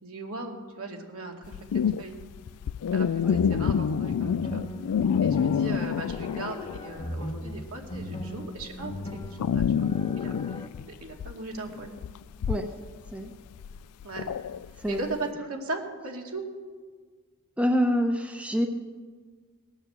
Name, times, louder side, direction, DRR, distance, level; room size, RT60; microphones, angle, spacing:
voice 1, 0.0-2.2 2.9-4.6 5.2-9.9 10.2-11.9 14.0-14.5 14.9-16.4, right 2 dB, 75° right, 1 dB, 2.3 m, -38 dB
sound 1, 1.4-7.0 7.3-15.2, left 7 dB, 85° left, 0.4 m, -28 dB
sound 2, 3.3-10.7, left 1 dB, 25° left, 1.0 m, -38 dB
voice 2, 17.6-18.7, equal, 5° right, 4 dB, 0.9 m, -26 dB
19.0 x 9.1 x 7.9 m, 1.5 s
head